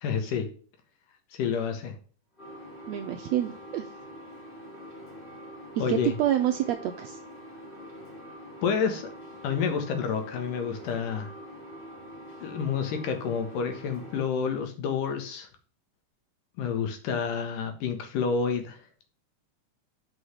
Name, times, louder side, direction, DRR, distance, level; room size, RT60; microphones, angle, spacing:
voice 1, 0.0-0.5 1.3-1.9 5.8-6.1 8.6-9.1 9.4-11.3 12.4-15.5 16.6-18.8, left 6 dB, 85° left, 6 dB, 3.0 m, -29 dB
sound 1, 2.4-14.3, equal, 15° left, 2.9 m, -45 dB
voice 2, 2.9-3.8 5.8-7.2, right 11 dB, 90° right, 6 dB, 1.5 m, -27 dB
6.3 x 5.3 x 4.7 m, 0.41 s
omnidirectional pair, 3.7 m